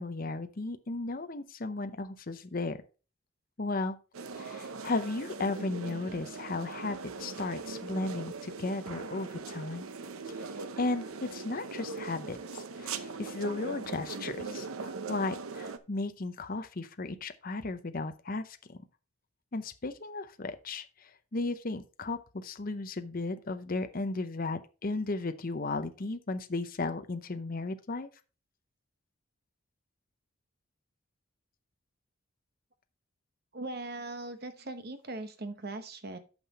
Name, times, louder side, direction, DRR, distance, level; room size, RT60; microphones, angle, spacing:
voice 1, 0.0-2.8 3.6-4.0 4.4-9.9 10.4-18.8 19.5-28.1, left 3 dB, 40° left, 9 dB, 0.6 m, -35 dB
sound 1, 4.1-15.8, right 4 dB, 75° right, 0.7 m, -40 dB
voice 2, 33.5-36.2, right 2 dB, 45° right, 9 dB, 0.9 m, -40 dB
8.9 x 5.8 x 4.1 m, 0.35 s
head